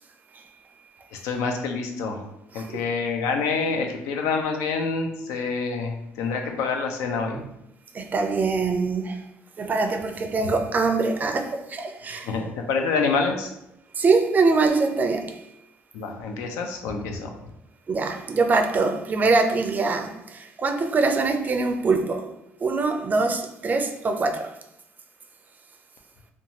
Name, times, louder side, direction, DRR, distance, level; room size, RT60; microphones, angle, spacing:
voice 1, 1.1-2.2 2.5-7.4 12.2-13.5 15.9-17.3, left 4 dB, 90° left, 4 dB, 0.4 m, -27 dB
voice 2, 7.9-9.2 9.6-12.3 14.0-15.4 17.9-22.3 22.6-24.6, right 3 dB, 35° right, 6 dB, 0.4 m, -23 dB
2.6 x 2.3 x 2.8 m, 0.83 s
cardioid pair, 90°, 5 cm